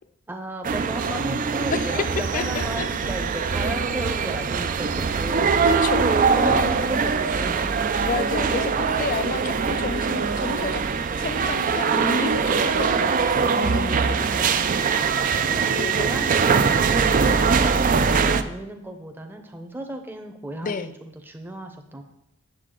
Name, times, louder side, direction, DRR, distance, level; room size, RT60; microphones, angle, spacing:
voice 1, 0.3-5.7 6.0-8.1 14.2-14.8 15.6-20.9 21.2-22.0, right 1 dB, 10° right, 4 dB, 0.7 m, -34 dB
sound 1, 0.6-18.4, right 5 dB, 35° right, 0.4 m, -22 dB
voice 2, 1.7-2.9 5.7-6.8 8.0-10.9 11.2-14.5 15.5-16.1 17.1-17.3 20.6-20.9, left 5 dB, 35° left, 13 dB, 0.4 m, -31 dB
8.2 x 7.4 x 3.8 m, 0.82 s
head